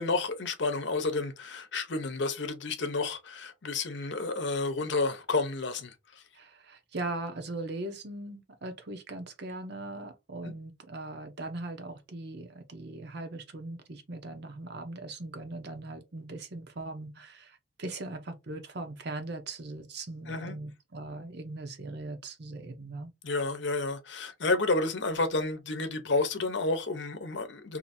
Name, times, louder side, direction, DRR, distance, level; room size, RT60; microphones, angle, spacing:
voice 1, 0.0-5.9 10.4-10.5 20.3-20.6 23.2-27.8, left 3 dB, 60° left, 0.8 m, -30 dB
voice 2, 6.3-23.1, right 2 dB, 55° right, 0.8 m, -40 dB
2.8 x 2.7 x 4.0 m
head